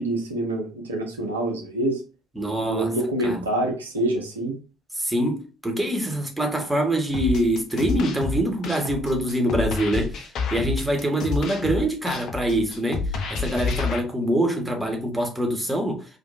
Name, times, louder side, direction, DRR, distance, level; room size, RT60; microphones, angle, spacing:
voice 1, 0.0-2.0 2.7-4.6, right 1 dB, 80° right, 1.1 m, -26 dB
voice 2, 2.3-2.9 3.2-3.4 4.9-16.1, right 1 dB, 10° right, 1.7 m, -25 dB
sound 1, 7.1-14.0, left 4 dB, 50° left, 0.9 m, -29 dB
5.0 x 3.2 x 2.8 m
figure-of-eight pair, 50°, 0 cm